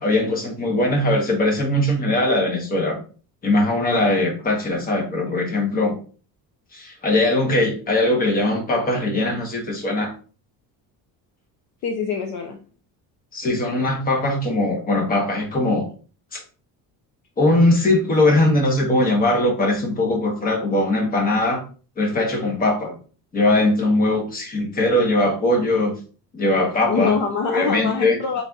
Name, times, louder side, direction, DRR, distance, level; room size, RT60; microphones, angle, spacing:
voice 1, 0.0-3.0 3.4-6.0 6.7-10.1 13.3-15.9 16.3-16.4 17.4-21.6 22.0-23.0 23.3-25.9 26.3-27.1 27.4-28.2, left 1 dB, 25° left, 0.9 m, -20 dB
voice 2, 11.8-12.6 26.9-28.4, left 5 dB, 50° left, 0.6 m, -24 dB
4.0 x 3.9 x 2.3 m
cardioid pair, 170°, 37 cm